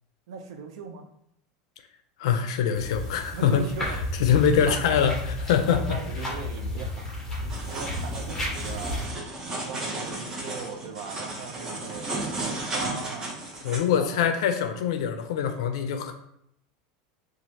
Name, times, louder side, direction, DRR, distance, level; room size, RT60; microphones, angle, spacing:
voice 1, 0.3-1.1 3.3-4.0 4.5-4.8 5.7-7.1 7.4-9.1 9.5-13.3 13.9-14.4, right 5 dB, 75° right, 6 dB, 0.4 m, -39 dB
voice 2, 2.2-6.0 13.6-16.1, left 7 dB, 75° left, 7 dB, 0.4 m, -24 dB
sound 1, 2.7-9.1, left 1 dB, 10° left, 0.8 m, -33 dB
sound 2, 7.5-13.8, right 2 dB, 20° right, 0.5 m, -34 dB
3.1 x 2.4 x 2.7 m, 0.75 s
supercardioid pair, 170°, 3 cm